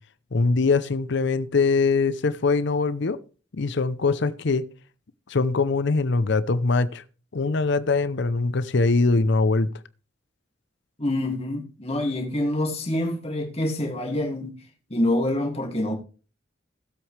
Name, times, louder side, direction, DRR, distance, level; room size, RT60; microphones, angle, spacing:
voice 1, 0.3-3.2 3.5-4.7 5.3-7.0 7.3-9.7, left 3 dB, 65° left, 0.7 m, -22 dB
voice 2, 11.0-14.6 14.9-15.9, left 1 dB, 35° left, 2.4 m, -26 dB
17.0 x 7.9 x 3.3 m
head